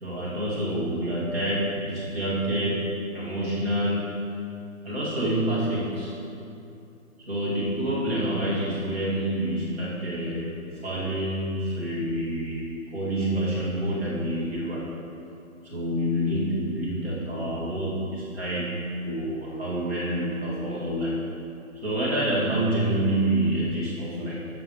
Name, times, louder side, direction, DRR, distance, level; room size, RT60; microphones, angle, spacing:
voice 1, 0.0-4.2 4.8-6.1 7.3-14.9 15.6-21.3 21.8-24.5, right 1 dB, 45° right, -8 dB, 2.3 m, -27 dB
13.5 x 6.9 x 3.1 m, 2.7 s
hypercardioid pair, 165°, 43 cm